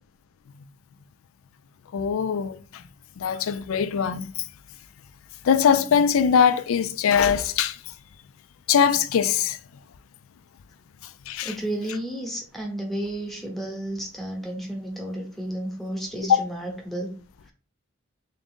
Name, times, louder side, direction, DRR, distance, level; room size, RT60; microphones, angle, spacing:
voice 1, 1.9-2.8 3.2-4.3 5.4-7.8 8.7-9.6 11.3-11.5 16.3-16.4, left 7 dB, 75° left, 0.4 m, -21 dB
voice 2, 11.4-17.1, right 1 dB, ahead, 0.9 m, -32 dB
3.5 x 2.6 x 3.5 m
head